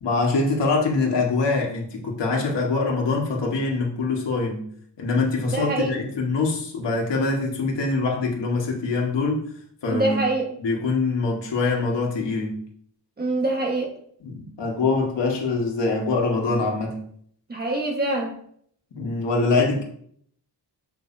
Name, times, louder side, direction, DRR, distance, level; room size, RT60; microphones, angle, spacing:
voice 1, 0.0-4.6 5.0-9.4 9.8-10.2 10.6-12.6 14.2-17.0 18.9-19.8, left 3 dB, 75° left, -1 dB, 1.8 m, -24 dB
voice 2, 5.4-6.0 9.9-10.5 13.2-13.9 17.5-18.3, right 2 dB, 20° right, -1 dB, 1.5 m, -25 dB
7.0 x 5.9 x 2.8 m, 0.63 s
wide cardioid pair, 155°, 43 cm